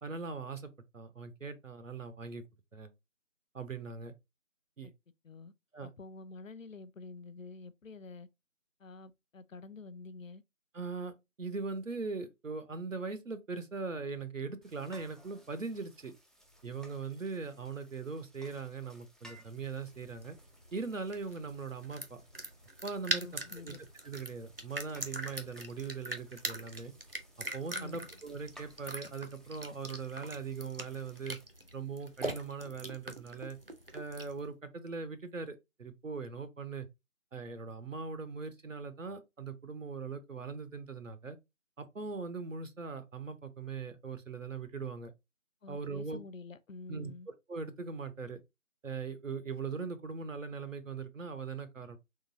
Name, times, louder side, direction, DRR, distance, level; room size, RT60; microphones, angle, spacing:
voice 1, 0.0-2.4 2.7-2.9 3.5-4.1 4.8-4.9 5.7-5.9 10.7-16.1 16.6-20.4 20.7-22.2 22.8-23.8 24.0-26.9 27.5-31.4 31.7-33.6 33.9-36.9 37.3-41.4 41.8-45.1 45.7-46.2 46.9-47.1 47.5-48.4 48.8-52.0, right 4 dB, 70° right, 0.8 m, -40 dB
voice 2, 5.8-8.3 8.8-10.4 23.1-23.8 27.7-28.1 45.6-47.3, left 4 dB, 75° left, 0.6 m, -48 dB
sound 1, 14.6-31.4, right 1 dB, ahead, 0.4 m, -61 dB
sound 2, 19.6-34.5, right 1 dB, 45° right, 0.6 m, -42 dB
3.7 x 3.0 x 2.7 m
figure-of-eight pair, 170°, 40 cm